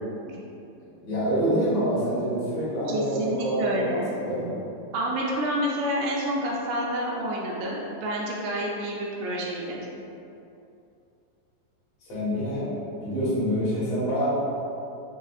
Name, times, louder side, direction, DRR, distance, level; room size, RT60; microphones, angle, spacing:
voice 1, 1.0-4.5 12.1-14.3, equal, 60° left, -10 dB, 1.7 m, -26 dB
voice 2, 2.9-4.1 4.9-9.9, equal, 85° right, -3 dB, 2.5 m, -28 dB
6.6 x 2.5 x 2.4 m, 2.7 s
omnidirectional pair, 4.6 m